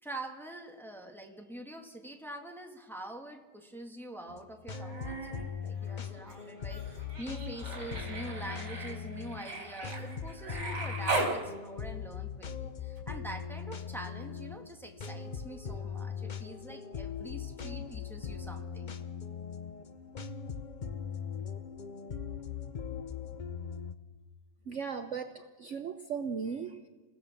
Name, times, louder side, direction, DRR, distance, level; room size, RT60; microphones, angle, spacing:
voice 1, 0.0-18.9, right 1 dB, ahead, 3 dB, 1.6 m, -45 dB
sound 1, 4.3-23.9, left 6 dB, 40° left, 0.7 m, -40 dB
Human voice, 4.7-5.5 5.8-11.4 13.0-13.1, right 2 dB, 80° right, 4.3 m, -38 dB
voice 2, 24.7-26.9, right 6 dB, 55° right, 7 dB, 1.0 m, -37 dB
28.0 x 16.5 x 7.2 m, 1.4 s
omnidirectional pair, 1.8 m